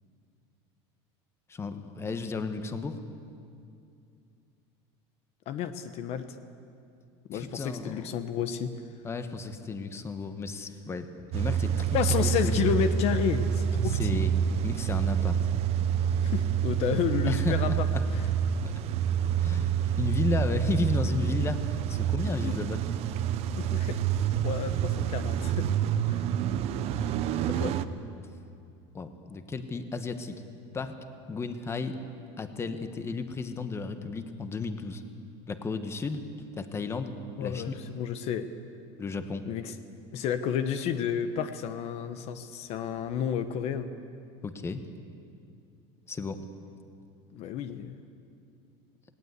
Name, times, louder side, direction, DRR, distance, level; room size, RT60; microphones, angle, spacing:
voice 1, 1.5-3.0 7.3-8.1 9.0-12.0 12.2-12.5 13.8-14.3 14.6-15.4 17.3-18.0 19.4-22.8 28.9-30.4 30.7-31.0 31.3-32.0 32.4-35.0 35.5-36.3 36.5-37.1 37.4-37.8 39.0-39.4 44.4-44.8 46.1-46.4, left 4 dB, 20° left, 9 dB, 1.2 m, -33 dB
voice 2, 5.5-6.4 7.3-8.7 11.9-14.2 16.2-17.9 18.1-18.2 22.4-22.5 23.6-24.0 24.3-25.7 26.1-26.2 27.5-27.7 37.4-38.5 39.5-39.8 40.1-43.9 47.3-48.0, left 8 dB, 50° left, 10 dB, 1.0 m, -31 dB
Car / Engine starting / Idling, 11.3-27.9, right 9 dB, 45° right, 0.8 m, -27 dB
19.0 x 18.5 x 8.3 m, 2.5 s
supercardioid pair, 140°, 14 cm